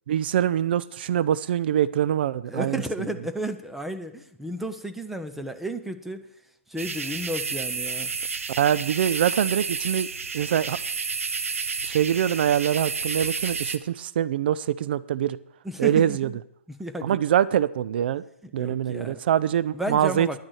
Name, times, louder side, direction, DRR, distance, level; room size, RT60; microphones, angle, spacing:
voice 1, 0.1-3.1 8.6-10.1 10.3-10.8 11.8-15.4 15.8-16.3 17.0-18.2 18.5-20.4, right 10 dB, 45° right, 18 dB, 0.4 m, -24 dB
voice 2, 2.5-6.2 6.7-8.1 15.6-16.3 16.8-17.2 18.6-19.2 19.7-20.4, right 1 dB, 5° right, 7 dB, 0.6 m, -32 dB
sound 1, 6.8-13.8, right 5 dB, 70° right, 0.9 m, -31 dB
10.5 x 6.1 x 7.7 m, 0.76 s
figure-of-eight pair, 130°, 8 cm